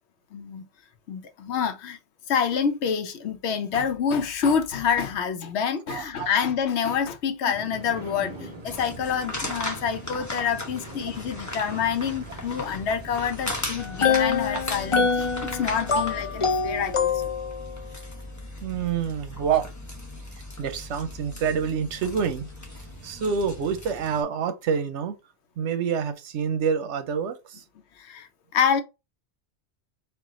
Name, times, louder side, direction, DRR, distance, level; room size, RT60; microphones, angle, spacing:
voice 1, 0.3-0.6 1.1-2.0 2.3-17.1 28.0-28.3 28.5-28.8, left 7 dB, 75° left, 1.0 m, -27 dB
voice 2, 5.9-6.3 10.7-10.8 15.9-16.0 18.6-19.6 20.6-22.5 23.0-25.2 25.6-27.6, right 6 dB, 85° right, 1.0 m, -27 dB
sound 1, 7.5-16.9, equal, 45° right, 1.5 m, -43 dB
sound 2, 8.7-24.2, left 1 dB, 15° left, 0.9 m, -37 dB
sound 3, 13.8-17.8, left 6 dB, 40° left, 0.5 m, -25 dB
4.5 x 2.4 x 3.6 m
omnidirectional pair, 1.2 m